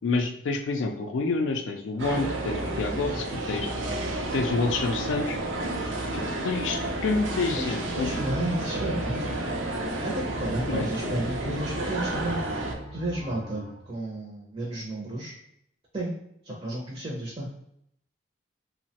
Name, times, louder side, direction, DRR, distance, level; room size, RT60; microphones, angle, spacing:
voice 1, 0.0-3.7 4.3-5.4 6.1-8.1 10.7-11.2, left 3 dB, 90° left, 4 dB, 0.4 m, -28 dB
sound 1, 2.0-12.7, right 2 dB, 85° right, 0.5 m, -31 dB
sound 2, 6.2-6.7 7.1-7.7 8.1-10.6 11.0-11.5 12.0-13.9, equal, 35° left, 0.7 m, -42 dB
voice 2, 7.6-9.3 10.0-12.4 12.9-15.3 15.9-16.2 16.4-17.5, right 1 dB, 30° right, -4 dB, 0.5 m, -32 dB
2.9 x 2.1 x 2.7 m, 0.74 s
head